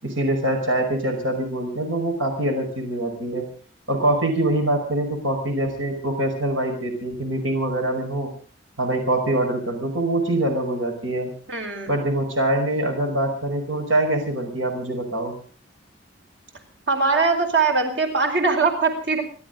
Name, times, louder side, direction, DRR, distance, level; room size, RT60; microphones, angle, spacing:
voice 1, 0.0-3.5 3.9-8.3 8.8-11.3 11.9-15.3, right 1 dB, 85° right, 4 dB, 5.2 m, -24 dB
voice 2, 11.5-11.9 16.9-19.2, right 4 dB, 65° right, 4 dB, 5.0 m, -21 dB
29.0 x 12.5 x 3.9 m, 0.41 s
head